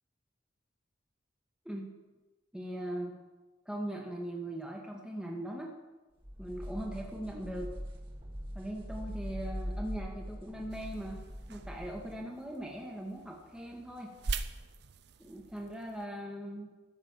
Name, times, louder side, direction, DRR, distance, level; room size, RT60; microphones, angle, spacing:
voice 1, 2.5-3.1 3.7-5.7 6.4-7.7 8.5-11.2 11.5-14.1 15.2-16.7, right 1 dB, 5° right, -1 dB, 0.9 m, -40 dB
sound 1, 6.2-12.2, equal, 25° right, 1.6 m, -42 dB
sound 2, 10.7-16.1, right 4 dB, 60° right, 0.6 m, -43 dB
13.0 x 5.7 x 7.2 m, 1.2 s
head